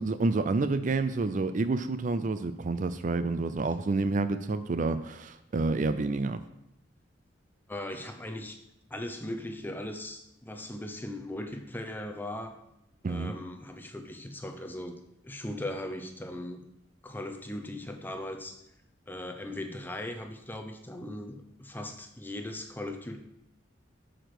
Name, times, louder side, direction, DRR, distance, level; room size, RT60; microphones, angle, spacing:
voice 1, 0.0-6.4 13.0-13.3, right 3 dB, 40° right, 11 dB, 0.4 m, -29 dB
voice 2, 7.7-8.6 8.9-12.6 13.1-16.6 17.0-18.6 19.1-23.2, left 1 dB, 10° left, 6 dB, 0.7 m, -39 dB
8.7 x 5.1 x 6.1 m, 0.81 s
head